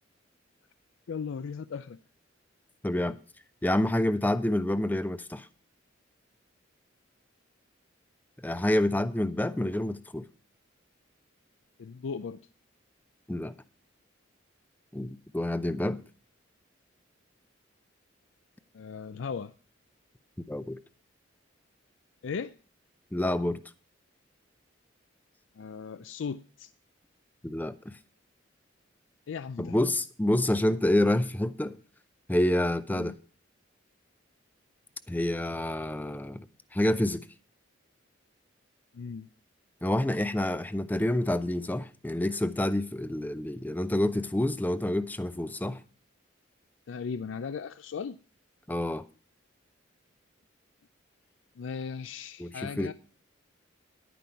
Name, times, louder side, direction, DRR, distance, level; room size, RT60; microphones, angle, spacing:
voice 1, 1.1-2.0 11.8-12.4 18.7-19.5 22.2-22.5 25.6-26.7 29.3-29.8 32.9-33.1 38.9-39.3 46.9-48.2 51.6-52.9, left 6 dB, 70° left, 0.4 m, -37 dB
voice 2, 2.8-3.2 3.6-5.5 8.4-10.2 13.3-13.5 14.9-16.0 20.5-20.8 23.1-23.6 27.4-27.9 29.6-31.8 32.3-33.1 35.1-36.5 36.7-37.2 39.8-45.8 48.7-49.0 52.4-52.9, left 1 dB, 10° left, 0.4 m, -28 dB
11.0 x 9.3 x 4.4 m
head